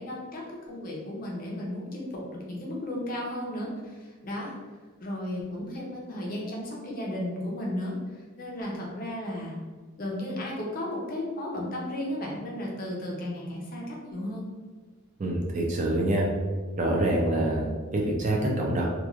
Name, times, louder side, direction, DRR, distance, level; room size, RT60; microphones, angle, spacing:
voice 1, 0.0-4.5 5.0-9.5 10.0-14.5, left 1 dB, 40° left, -3 dB, 0.5 m, -34 dB
voice 2, 15.2-16.2 16.8-17.7 17.9-18.9, right 1 dB, 35° right, -2 dB, 0.4 m, -25 dB
2.9 x 2.3 x 2.4 m, 1.4 s
head